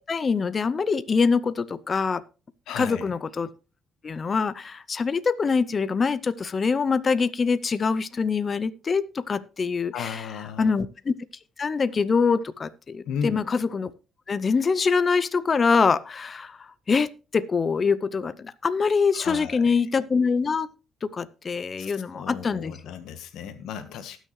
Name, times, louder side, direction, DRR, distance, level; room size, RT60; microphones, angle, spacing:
voice 1, 0.1-2.2 2.8-3.5 4.0-10.3 10.6-11.1 11.6-13.9 14.3-20.7 21.0-22.8, left 5 dB, 40° left, 16 dB, 0.6 m, -24 dB
voice 2, 2.7-3.0 9.9-10.7 13.1-13.4 19.1-19.7 21.8-24.2, left 7 dB, 85° left, 10 dB, 1.3 m, -35 dB
19.0 x 6.4 x 3.2 m, 0.32 s
cardioid pair, 90°, 0 cm